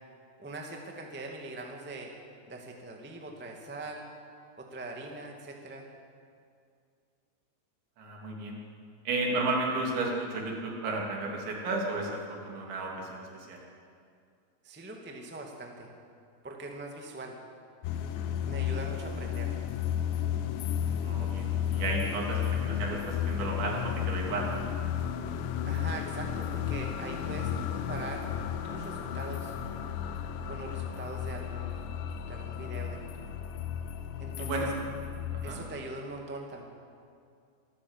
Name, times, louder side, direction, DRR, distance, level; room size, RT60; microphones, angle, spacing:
voice 1, 0.4-2.1 2.5-4.1 4.6-5.9 14.6-15.9 16.4-17.4 18.4-19.5 25.6-28.3 28.6-29.5 30.5-31.9 32.3-33.1 34.2-34.7 35.4-36.6, right 2 dB, 10° right, 1 dB, 0.7 m, -42 dB
voice 2, 8.0-8.6 9.1-13.6 21.0-24.6 34.4-34.7 35.3-35.6, right 2 dB, 90° right, -1 dB, 5.5 m, -33 dB
sound 1, 17.8-35.6, left 9 dB, 85° left, 3.3 m, -33 dB
25.5 x 13.5 x 8.3 m, 2.3 s
omnidirectional pair, 5.1 m